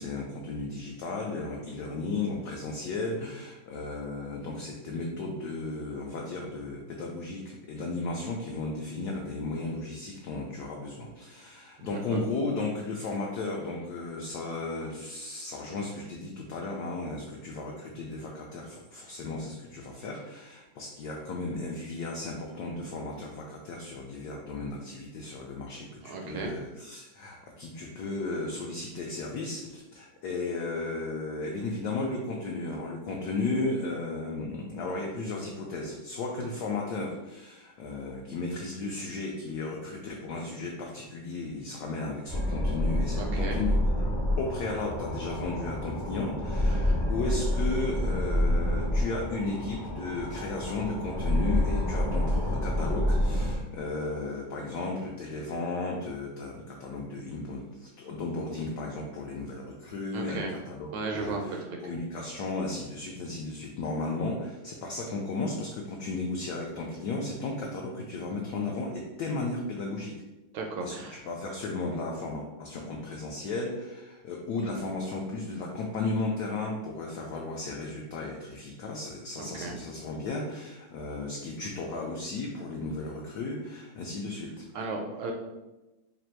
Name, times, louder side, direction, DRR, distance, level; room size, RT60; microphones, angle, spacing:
voice 1, 0.0-43.7 44.4-70.1 70.8-84.7, left 3 dB, 75° left, -1 dB, 0.9 m, -35 dB
voice 2, 11.8-12.2 26.0-26.5 43.2-43.6 46.7-47.0 60.1-60.5 60.9-61.4 70.5-71.2 79.4-79.8 84.7-85.3, right 3 dB, 75° right, 2 dB, 1.1 m, -35 dB
sound 1, 42.3-53.6, left 1 dB, 30° left, 0.4 m, -28 dB
3.3 x 2.5 x 4.4 m, 1.0 s
omnidirectional pair, 2.3 m